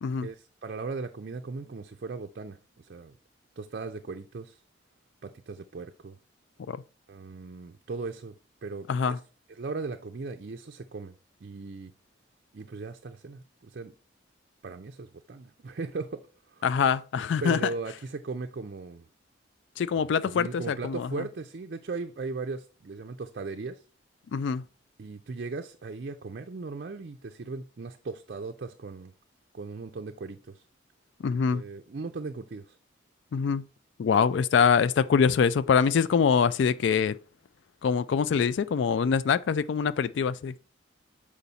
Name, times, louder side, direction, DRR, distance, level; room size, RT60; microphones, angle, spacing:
voice 1, 0.2-3.2 3.6-4.6 5.2-6.2 7.1-8.3 8.6-9.2 9.6-11.1 11.4-11.9 12.5-13.9 14.6-16.2 16.5-16.6 17.4-19.1 20.0-23.8 25.0-29.1 29.5-30.6 31.5-32.8, right 4 dB, 50° right, 0.4 m, -38 dB
voice 2, 8.9-9.2 16.6-17.7 19.8-21.3 24.3-24.6 31.2-31.6 33.3-33.6 34.0-37.1 37.8-40.6, left 6 dB, 65° left, 0.3 m, -24 dB
6.9 x 5.0 x 4.0 m
head